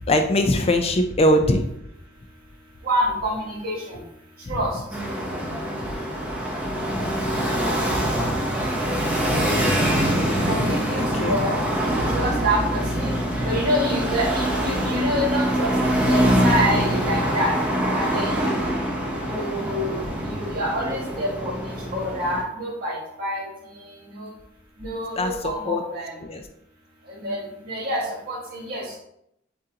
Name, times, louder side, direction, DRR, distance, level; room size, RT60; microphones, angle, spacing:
voice 1, 0.1-1.6 4.5-4.6 11.0-11.4 25.2-25.8 26.2-26.4, left 1 dB, 30° left, 6 dB, 0.4 m, -21 dB
voice 2, 2.8-4.0 4.5-4.8 10.3-11.6 11.9-13.2 13.4-17.5 17.9-18.5 19.2-21.5 21.9-23.5 23.9-24.3 24.8-26.2 27.1-28.8, equal, 50° right, -4 dB, 1.8 m, -27 dB
sound 1, 4.9-22.4, equal, 5° right, 0.8 m, -24 dB
7.4 x 2.5 x 2.8 m, 0.77 s
head